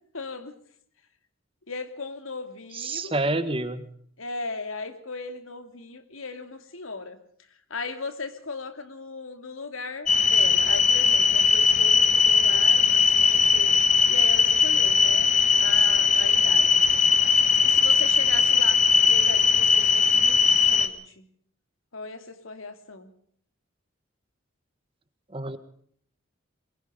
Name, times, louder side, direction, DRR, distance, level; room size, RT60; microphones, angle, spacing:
voice 1, 0.1-0.5 1.7-3.2 4.2-7.2 7.7-13.7 14.1-15.3 15.6-16.9 17.6-21.3 21.9-23.1, left 3 dB, 85° left, 9 dB, 2.8 m, -37 dB
voice 2, 2.7-3.9 25.3-25.6, right 2 dB, 25° right, 12 dB, 1.5 m, -28 dB
sound 1, 10.1-20.9, left 5 dB, 35° left, 1.4 m, -19 dB
23.0 x 22.0 x 5.1 m, 0.62 s
head